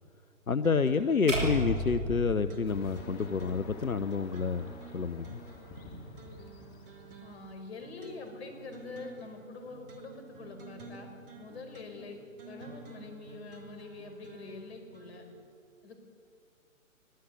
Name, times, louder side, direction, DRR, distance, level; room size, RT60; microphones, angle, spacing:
voice 1, 0.5-5.4, left 5 dB, 90° left, 12 dB, 0.9 m, -29 dB
sound 1, 0.6-15.4, right 3 dB, 40° right, 3.5 m, -50 dB
sound 2, 1.3-3.5, right 1 dB, 65° right, 7.0 m, -34 dB
sound 3, 2.7-7.7, left 3 dB, 20° left, 3.5 m, -50 dB
voice 2, 7.2-12.2 12.5-15.3 15.8-16.0, left 3 dB, 50° left, 6 dB, 5.4 m, -45 dB
24.5 x 17.0 x 9.4 m, 2.4 s
figure-of-eight pair, 130°, 41 cm